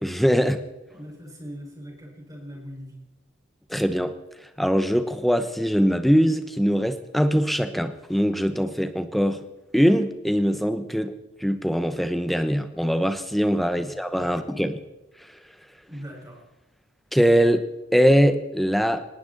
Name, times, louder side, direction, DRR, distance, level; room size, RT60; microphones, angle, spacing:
voice 1, 0.0-0.6 3.7-4.1 4.6-9.4 9.7-11.2 11.4-14.8 17.1-17.6 17.9-19.0, equal, ahead, 9 dB, 1.0 m, -22 dB
voice 2, 0.9-3.0 13.7-14.6 15.9-16.4, equal, 20° right, -1 dB, 4.8 m, -41 dB
19.0 x 18.0 x 4.0 m, 0.98 s
head